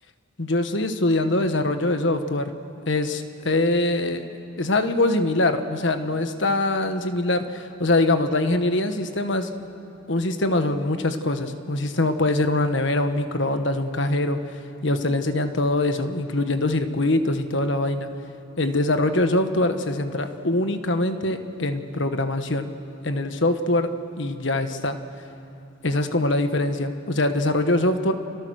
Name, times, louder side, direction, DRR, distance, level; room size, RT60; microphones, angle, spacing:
voice 1, 0.4-2.5 2.9-4.2 4.6-9.5 10.1-18.1 18.6-22.7 23.0-23.9 24.2-25.0 25.8-28.1, left 2 dB, 60° left, 8 dB, 1.5 m, -23 dB
30.0 x 27.0 x 6.5 m, 2.8 s
head